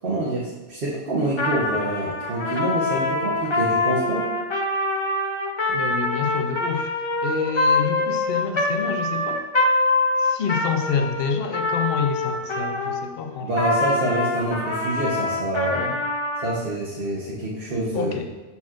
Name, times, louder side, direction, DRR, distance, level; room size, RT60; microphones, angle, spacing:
voice 1, 0.0-4.3 13.4-15.9 16.4-18.1, right 2 dB, 60° right, -6 dB, 1.1 m, -26 dB
Trumpet, 1.3-13.1 13.5-16.5, left 2 dB, 35° left, 0.5 m, -24 dB
voice 2, 5.7-6.9 7.2-9.4 10.2-13.7 15.6-16.0 17.9-18.3, left 6 dB, 65° left, 6 dB, 0.8 m, -28 dB
7.0 x 6.0 x 2.4 m, 1.2 s
omnidirectional pair, 1.1 m